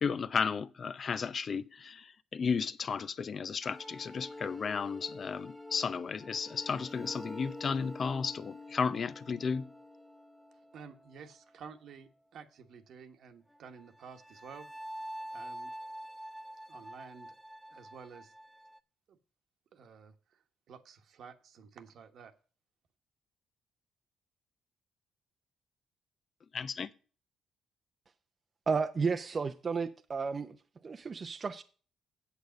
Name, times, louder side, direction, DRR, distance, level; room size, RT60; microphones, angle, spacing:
voice 1, 0.0-9.7 26.5-26.9, left 5 dB, 45° left, 0.7 m, -34 dB
Violin After Effects, 3.6-11.6 13.5-18.8, left 1 dB, ahead, 0.8 m, -47 dB
voice 2, 10.7-14.7 15.3-15.7 16.7-17.3 17.7-18.3 19.1-19.2 19.7-22.3, right 6 dB, 70° right, 1.3 m, -51 dB
voice 3, 28.7-30.6 30.8-31.6, right 5 dB, 40° right, 0.7 m, -32 dB
8.3 x 8.1 x 5.2 m
cardioid pair, 90°, 0 cm